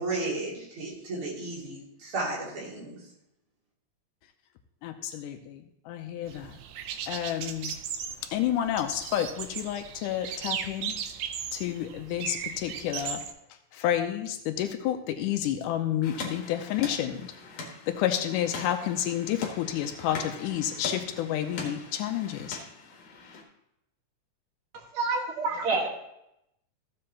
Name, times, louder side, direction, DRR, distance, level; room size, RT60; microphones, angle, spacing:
voice 1, 0.0-3.0, right 2 dB, 40° right, -6 dB, 3.5 m, -33 dB
voice 2, 4.8-6.6 7.1-7.8 8.3-11.0 11.5-13.2 13.7-17.3 17.9-22.6, left 11 dB, 90° left, 6 dB, 2.2 m, -30 dB
sound 1, 6.3-13.3, right 8 dB, 75° right, 1.8 m, -37 dB
sound 2, 16.0-23.4, left 3 dB, 60° left, 2.5 m, -41 dB
voice 3, 24.9-25.9, right 3 dB, 90° right, 0 dB, 3.3 m, -27 dB
14.5 x 7.6 x 2.9 m, 0.82 s
omnidirectional pair, 3.6 m